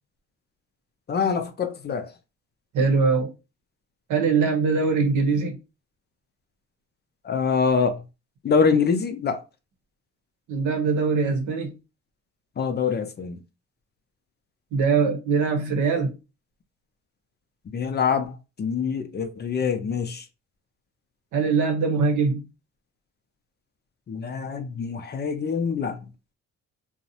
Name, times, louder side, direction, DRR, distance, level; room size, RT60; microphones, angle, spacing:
voice 1, 1.1-2.1 7.2-8.0 8.4-9.4 12.6-13.4 17.7-20.2 24.1-26.0, left 5 dB, 35° left, 0.4 m, -25 dB
voice 2, 2.7-3.3 4.1-5.6 10.5-11.7 14.7-16.2 21.3-22.4, right 4 dB, 75° right, 0.8 m, -22 dB
2.6 x 2.0 x 2.8 m
cardioid pair, 90°, 30 cm